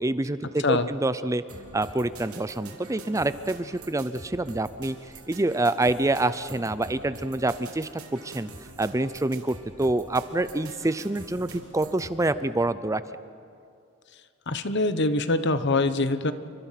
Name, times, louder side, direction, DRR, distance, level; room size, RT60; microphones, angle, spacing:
voice 1, 0.0-1.4 1.7-5.0 5.3-8.5 8.8-13.0, right 2 dB, 15° right, 14 dB, 0.5 m, -26 dB
sound 1, 1.5-12.2, right 2 dB, 90° right, 3.0 m, -45 dB
voice 2, 14.5-16.3, left 2 dB, 55° left, 12 dB, 1.1 m, -24 dB
28.5 x 25.0 x 5.9 m, 2.4 s
head